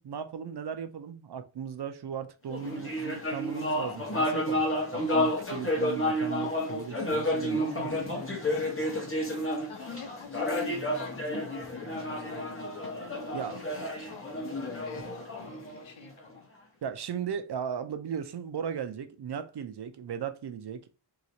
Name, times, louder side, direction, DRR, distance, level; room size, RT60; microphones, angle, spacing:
voice 1, 0.0-4.6 4.9-8.0 13.3-13.6 16.8-20.9, right 7 dB, 55° right, 0.5 m, -37 dB
sound 1, 2.5-16.2, left 1 dB, 25° left, 1.0 m, -31 dB
voice 2, 9.7-12.7 13.3-16.5, left 6 dB, 70° left, 0.8 m, -48 dB
2.9 x 2.8 x 2.7 m
wide cardioid pair, 90°, 49 cm